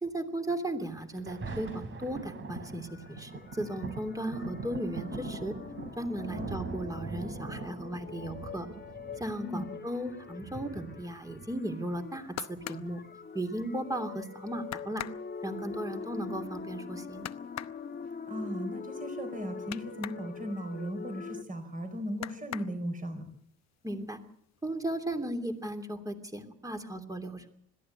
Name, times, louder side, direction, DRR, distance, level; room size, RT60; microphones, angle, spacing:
voice 1, 0.0-5.5 6.0-8.7 9.2-13.0 13.3-15.0 15.4-17.3 23.8-24.2 24.6-27.5, right 1 dB, 10° right, 6 dB, 3.1 m, -36 dB
Thunder, 0.9-11.9 12.6-12.7, right 3 dB, 45° right, 3.2 m, -42 dB
sound 1, 2.5-21.4, left 5 dB, 35° left, 1.4 m, -44 dB
sound 2, 11.9-13.9 14.3-14.4 14.7-20.3 20.6-21.7 22.1-23.2 23.6-24.2 24.5-25.2 25.6-25.7, left 11 dB, 60° left, 0.9 m, -43 dB
voice 2, 18.2-23.2, equal, 25° right, 7 dB, 4.7 m, -37 dB
21.5 x 15.0 x 8.3 m, 0.66 s
cardioid pair, 90°, 30 cm